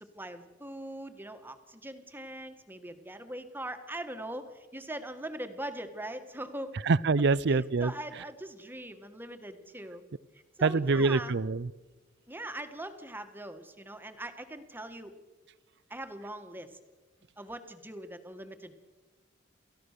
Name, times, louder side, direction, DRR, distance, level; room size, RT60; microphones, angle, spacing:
voice 1, 0.0-6.8 7.5-10.0 10.6-11.3 12.3-15.1 15.9-16.8 17.4-18.8, right 1 dB, 10° right, 8 dB, 1.6 m, -41 dB
voice 2, 6.9-7.9 10.6-11.7, right 4 dB, 65° right, 21 dB, 0.5 m, -25 dB
28.5 x 14.5 x 6.7 m, 1.2 s
head